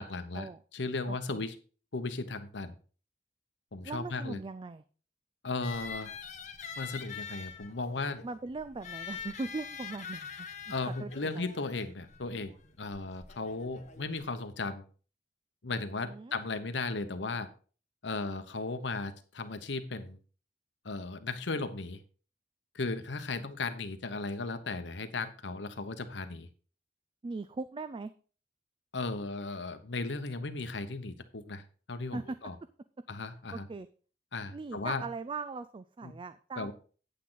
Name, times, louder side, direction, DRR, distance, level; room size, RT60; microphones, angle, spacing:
voice 1, 0.0-1.6 1.9-2.8 3.7-4.4 5.4-6.1 6.8-8.2 10.7-14.8 15.6-17.5 18.0-20.2 20.8-22.0 22.7-26.5 28.9-31.6 31.9-32.5 33.1-33.7 34.3-35.0 36.0-36.1 36.6-36.7, left 3 dB, 80° left, 9 dB, 1.0 m, -36 dB
voice 2, 1.1-1.4 3.8-4.8 8.2-10.5 10.9-11.4 16.0-16.3 27.2-28.1 32.1-32.4 33.5-33.9 34.5-36.7, right 3 dB, 30° right, 13 dB, 0.3 m, -40 dB
sound 1, 5.6-14.3, left 6 dB, 40° left, 1.3 m, -45 dB
8.8 x 8.4 x 3.9 m, 0.39 s
head